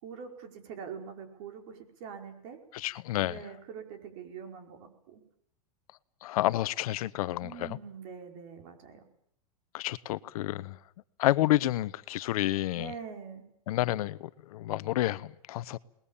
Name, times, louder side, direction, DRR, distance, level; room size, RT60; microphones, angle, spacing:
voice 1, 0.0-2.6 3.2-5.2 7.4-9.0 12.7-13.5, right 7 dB, 55° right, 5.1 m, -44 dB
voice 2, 2.7-3.4 6.2-7.8 9.7-10.8 11.2-12.9 13.7-15.8, left 15 dB, 70° left, 1.0 m, -29 dB
27.0 x 20.5 x 7.2 m
supercardioid pair, 135°, 19 cm